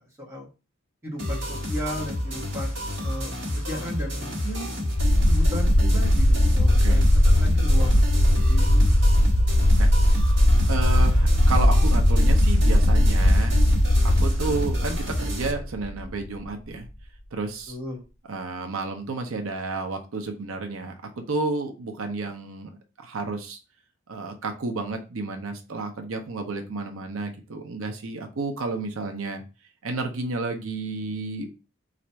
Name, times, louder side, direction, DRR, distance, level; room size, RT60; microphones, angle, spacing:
voice 1, 1.0-4.7 5.3-8.9 17.7-18.0, equal, 15° right, -3 dB, 1.4 m, -35 dB
sound 1, 1.2-15.5, equal, 60° right, 1.3 m, -30 dB
sound 2, 5.0-16.5, left 1 dB, 30° left, 0.5 m, -19 dB
voice 2, 6.7-7.0 9.8-10.2 10.7-13.6 14.0-16.9 17.3-17.8 18.3-22.7 23.0-23.6 24.1-29.4 29.8-31.5, right 3 dB, 80° right, 4 dB, 0.7 m, -31 dB
4.1 x 2.5 x 4.4 m, 0.31 s
head